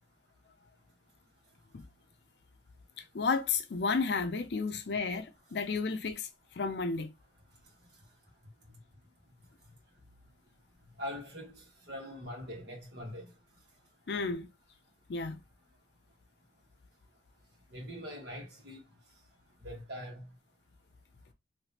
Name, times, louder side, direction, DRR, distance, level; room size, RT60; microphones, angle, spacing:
voice 1, 3.1-7.1 14.1-14.5 15.1-15.4, left 4 dB, 65° left, 0.5 m, -32 dB
voice 2, 11.0-13.3 17.7-18.8 19.6-20.3, equal, 65° right, 1.4 m, -42 dB
3.4 x 2.7 x 2.8 m
head